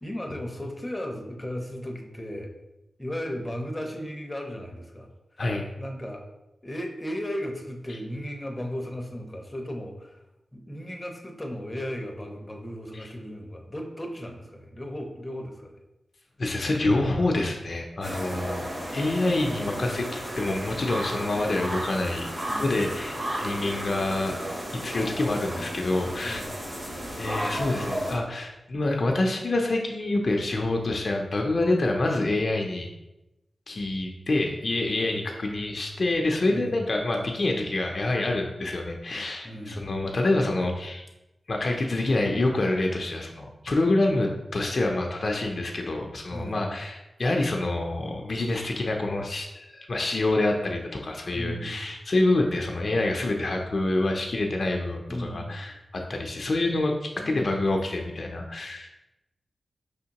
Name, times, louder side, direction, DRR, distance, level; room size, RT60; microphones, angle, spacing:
voice 1, 0.0-2.5 3.0-5.1 5.8-6.2 6.6-10.2 10.5-15.8 22.5-22.8 26.2-26.6 34.9-35.3 36.5-36.8 39.4-39.9 46.3-46.6 51.3-51.9 55.1-55.7 57.2-57.5, equal, 15° left, 2 dB, 0.7 m, -35 dB
voice 2, 16.4-24.4 24.7-26.4 27.2-32.9 33.7-41.0 41.5-58.9, left 2 dB, 55° left, 2 dB, 0.5 m, -27 dB
sound 1, 18.0-28.1, equal, 30° right, 1.5 m, -33 dB
4.9 x 3.6 x 2.9 m, 0.96 s
wide cardioid pair, 85°, 0 cm